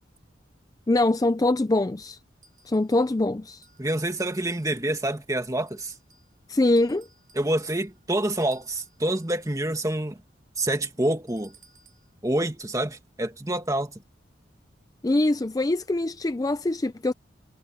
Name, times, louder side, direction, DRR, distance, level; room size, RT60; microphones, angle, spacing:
voice 1, 0.9-2.2 2.7-3.7 6.5-7.1 15.0-17.1, left 2 dB, 20° left, 0.4 m, -23 dB
sound 1, 2.4-3.2 3.6-5.0 5.7-6.4 6.8-9.7 11.3-12.1, right 4 dB, 45° right, 7.3 m, -59 dB
voice 2, 3.8-5.9 7.4-10.2 10.6-11.5 12.2-13.9, right 1 dB, 15° right, 1.8 m, -27 dB
head